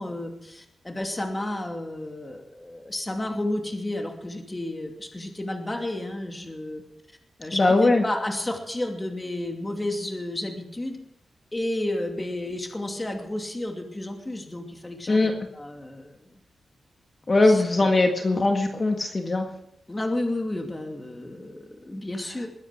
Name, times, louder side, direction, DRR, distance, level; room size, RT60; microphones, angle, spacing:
voice 1, 0.0-6.8 7.4-11.0 11.5-16.3 17.4-18.0 19.9-22.5, left 1 dB, 20° left, 3 dB, 2.7 m, -32 dB
voice 2, 7.5-8.0 15.1-15.3 17.3-19.5, left 2 dB, 35° left, 3 dB, 1.8 m, -20 dB
21.5 x 9.6 x 6.5 m, 0.81 s
cardioid pair, 90°, 0 cm